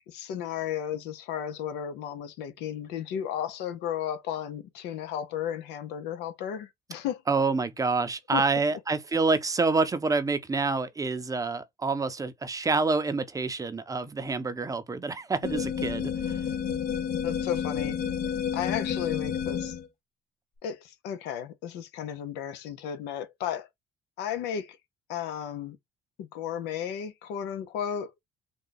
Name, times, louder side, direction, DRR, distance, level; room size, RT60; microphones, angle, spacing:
voice 1, 0.1-7.2 8.3-8.4 17.2-18.0 18.5-19.8 20.6-23.7 24.2-24.8 25.1-25.8 26.2-28.1, left 9 dB, 90° left, 0.7 m, -34 dB
voice 2, 7.3-16.4, right 3 dB, 20° right, 0.6 m, -27 dB
sound 1, 15.4-19.9, left 7 dB, 70° left, 1.2 m, -30 dB
3.9 x 2.3 x 3.9 m
cardioid pair, 110°, 17 cm